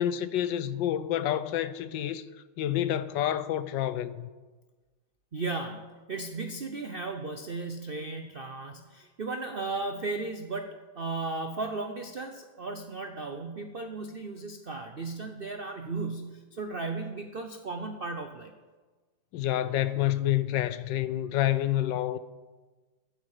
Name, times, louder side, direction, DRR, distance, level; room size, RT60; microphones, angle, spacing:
voice 1, 0.0-2.3 2.6-4.3 19.3-22.2, left 12 dB, 75° left, 1.2 m, -28 dB
voice 2, 5.3-18.5, right 3 dB, 75° right, 0.5 m, -35 dB
14.0 x 12.0 x 4.9 m
omnidirectional pair, 2.2 m